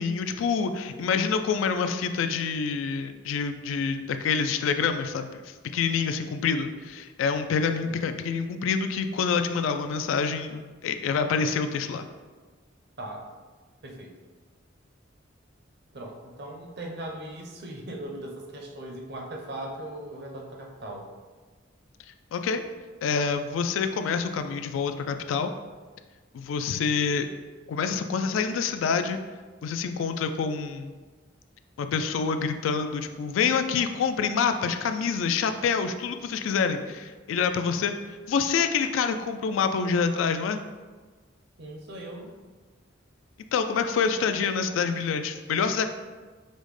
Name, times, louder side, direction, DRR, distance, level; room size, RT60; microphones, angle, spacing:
voice 1, 0.0-12.1 22.3-22.6 23.0-25.5 26.3-27.3 27.7-29.2 29.6-30.9 31.8-40.6 43.5-45.9, left 5 dB, 90° left, 9 dB, 0.3 m, -27 dB
voice 2, 5.9-6.3 7.7-8.0 9.1-9.2 13.0-13.2 13.8-14.1 15.9-21.1 41.6-42.3, right 1 dB, 60° right, 1 dB, 0.6 m, -39 dB
5.2 x 2.1 x 3.2 m, 1.4 s
head